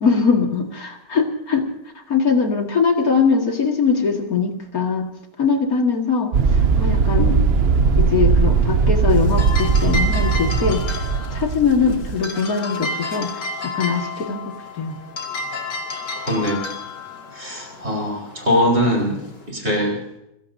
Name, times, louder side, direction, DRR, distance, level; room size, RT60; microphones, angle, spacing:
voice 1, 0.0-1.7 2.1-5.1 5.4-6.3 6.8-7.4 7.9-10.8 11.3-14.4 14.8-14.9, left 5 dB, 55° left, 3 dB, 2.6 m, -21 dB
sound 1, 6.3-12.2, right 5 dB, 50° right, 0.7 m, -18 dB
sound 2, 9.1-19.5, left 3 dB, 70° left, 3.3 m, -31 dB
voice 2, 16.2-16.6 17.3-19.2 19.5-20.0, equal, 35° right, 1 dB, 5.6 m, -21 dB
30.0 x 16.5 x 2.8 m, 0.85 s
omnidirectional pair, 1.9 m